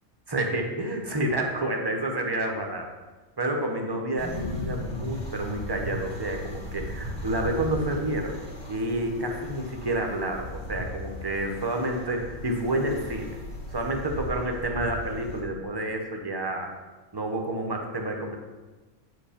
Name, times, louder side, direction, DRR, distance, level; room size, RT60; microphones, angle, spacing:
voice 1, 0.3-2.9 3.4-8.4 8.7-13.3 13.7-16.7 17.1-18.4, right 1 dB, 20° right, 2 dB, 0.9 m, -29 dB
sound 1, 4.2-15.4, left 1 dB, 70° left, 2.6 m, -37 dB
8.4 x 5.1 x 5.1 m, 1.2 s
omnidirectional pair, 1.4 m